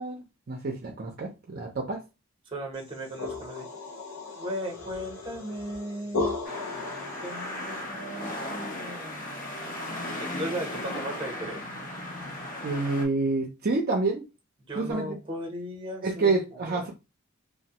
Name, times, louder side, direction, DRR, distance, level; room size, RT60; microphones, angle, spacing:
voice 1, 0.0-2.0 12.6-14.2 14.7-15.2 16.0-16.9, right 3 dB, 45° right, 0.5 m, -28 dB
voice 2, 2.5-3.7 4.3-6.3 7.2-9.8 10.2-11.6 14.7-16.8, equal, 25° right, 0.8 m, -37 dB
sound 1, 2.8-7.8, left 3 dB, 80° left, 0.8 m, -36 dB
sound 2, 6.4-13.1, left 1 dB, 40° left, 0.7 m, -36 dB
3.1 x 2.0 x 2.9 m
head